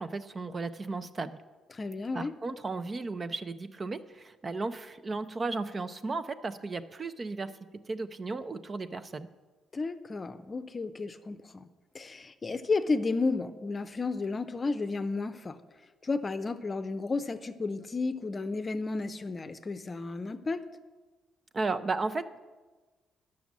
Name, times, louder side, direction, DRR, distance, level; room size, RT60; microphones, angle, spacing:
voice 1, 0.0-1.4 2.1-7.5 7.9-9.3 21.5-22.4, right 3 dB, 35° right, 11 dB, 0.5 m, -34 dB
voice 2, 1.7-2.3 9.7-11.7 11.9-15.6 16.0-20.6, left 3 dB, 30° left, 10 dB, 0.6 m, -32 dB
10.0 x 6.2 x 7.3 m, 1.3 s
cardioid pair, 90°, 0 cm